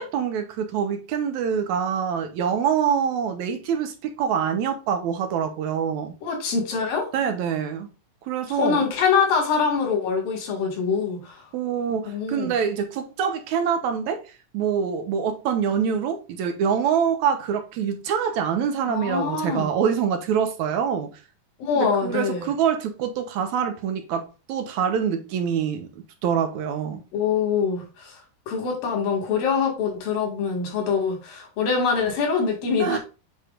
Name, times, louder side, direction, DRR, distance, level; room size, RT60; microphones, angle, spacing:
voice 1, 0.0-6.1 7.1-7.9 8.3-8.8 11.5-14.2 14.5-21.1 21.8-25.9 26.2-27.0 32.8-33.0, right 7 dB, 70° right, 2.1 m, -25 dB
voice 2, 6.2-7.1 8.5-11.4 12.1-12.5 18.9-19.7 21.6-22.5 27.1-28.2 28.5-33.0, left 5 dB, 85° left, 3.7 m, -24 dB
8.2 x 4.8 x 2.5 m
omnidirectional pair, 3.9 m